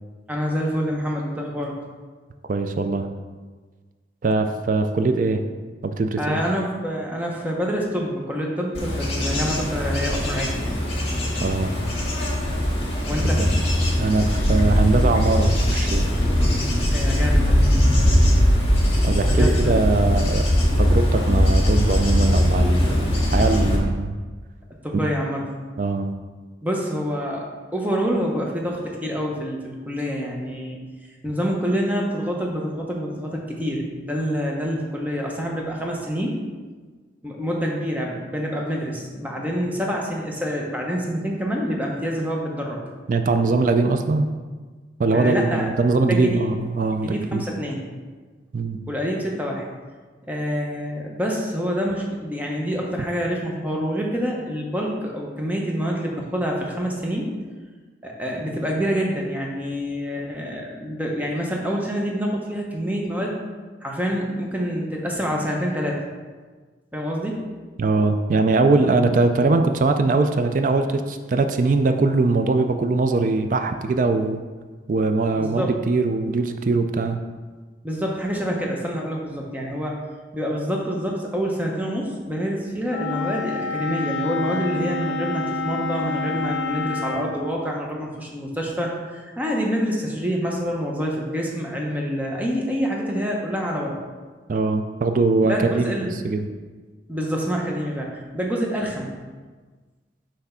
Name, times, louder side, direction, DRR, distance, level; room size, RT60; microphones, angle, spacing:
voice 1, 0.3-1.8 6.2-10.6 13.1-13.4 16.9-17.7 19.3-19.9 24.8-25.5 26.6-27.5 27.7-30.8 31.2-36.3 37.2-42.8 45.1-45.7 46.1-46.5 47.0-47.9 48.9-49.7 50.3-57.3 58.0-63.3 63.8-66.0 66.9-67.4 75.4-75.8 77.8-80.0 80.3-94.0 95.5-96.1 97.1-99.2, equal, 10° right, -1 dB, 0.7 m, -27 dB
voice 2, 2.5-3.1 4.2-5.4 5.8-6.4 11.4-11.7 13.3-13.5 14.0-16.0 19.0-20.4 20.8-24.1 24.9-25.0 25.8-26.1 43.1-44.3 45.0-47.4 48.5-48.8 67.8-74.4 74.9-77.2 94.5-96.0 96.2-96.5, right 3 dB, 45° right, 7 dB, 0.3 m, -21 dB
Bird / Insect / Wind, 8.7-23.8, equal, 30° left, 1.6 m, -20 dB
Wind instrument woodwind instrument, 82.9-87.3, left 3 dB, 80° left, 0.7 m, -28 dB
5.9 x 3.4 x 5.5 m, 1.4 s
head